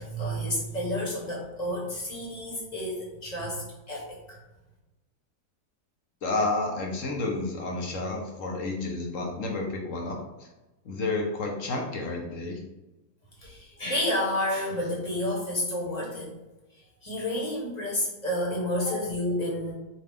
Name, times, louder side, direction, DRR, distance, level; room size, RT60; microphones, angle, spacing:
voice 1, 0.0-4.4 13.4-16.3 17.0-19.7, left 1 dB, 30° left, -4 dB, 1.1 m, -30 dB
voice 2, 6.2-10.5 10.8-12.6, left 2 dB, 60° left, 0 dB, 1.0 m, -30 dB
4.9 x 2.4 x 3.4 m, 1.0 s
omnidirectional pair, 1.7 m